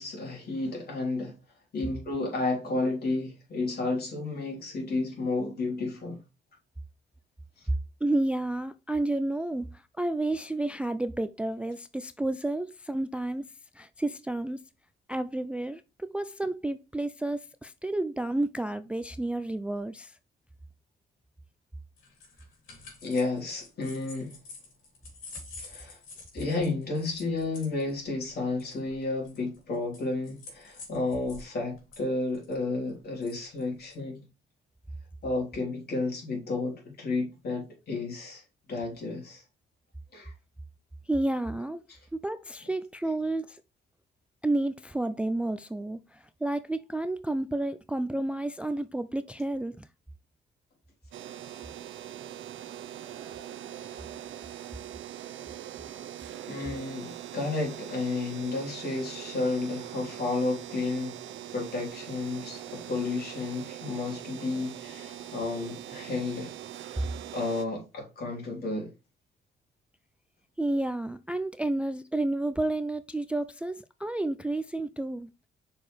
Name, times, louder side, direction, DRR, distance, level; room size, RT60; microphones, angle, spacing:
voice 1, 0.0-1.3 1.7-6.2 23.0-24.4 25.6-26.0 26.3-34.2 35.2-38.4 38.7-39.4 40.1-40.3 41.9-42.0 56.4-61.2 61.5-66.5 67.3-68.9, left 3 dB, 50° left, 3.5 m, -32 dB
voice 2, 8.0-13.5 13.7-14.6 15.1-20.2 41.1-41.8 42.1-43.6 44.4-49.9 70.6-75.3, right 2 dB, 5° right, 0.3 m, -31 dB
sound 1, 22.0-31.5 31.8-34.0, left 3 dB, 80° left, 2.9 m, -48 dB
sound 2, 51.1-67.7, right 11 dB, 70° right, 0.7 m, -42 dB
6.5 x 4.7 x 3.2 m
cardioid pair, 90°, 20 cm